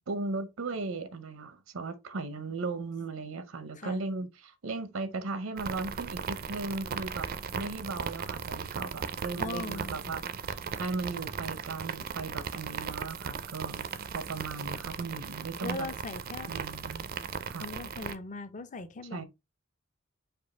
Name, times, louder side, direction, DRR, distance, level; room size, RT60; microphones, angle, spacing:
voice 1, 0.1-7.3 7.5-10.2 10.8-15.9 16.5-17.1 17.5-17.7 19.1-19.2, right 3 dB, 80° right, 0.7 m, -37 dB
sound 1, 5.6-18.1, right 6 dB, 45° right, 0.4 m, -37 dB
voice 2, 9.4-10.2 15.6-16.5 17.6-19.2, left 3 dB, 40° left, 0.6 m, -40 dB
5.2 x 2.4 x 4.1 m
head